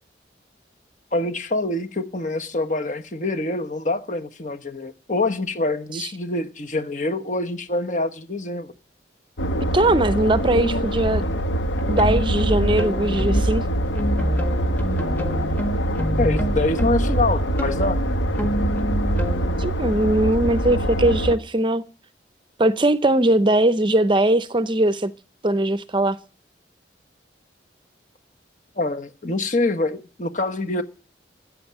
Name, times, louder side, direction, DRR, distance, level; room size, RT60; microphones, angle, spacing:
voice 1, 1.1-8.7 16.2-18.0 28.8-30.8, left 2 dB, 40° left, 1.3 m, -25 dB
sound 1, 9.4-21.4, right 1 dB, 80° left, 1.5 m, -25 dB
voice 2, 9.7-11.2 11.9-13.7 19.6-21.8 22.6-25.1 25.4-26.2, right 1 dB, 25° right, 0.6 m, -20 dB
sound 2, 10.9-11.2 11.8-13.6 14.0-19.6, right 1 dB, 10° left, 1.5 m, -25 dB
14.0 x 8.8 x 9.2 m
head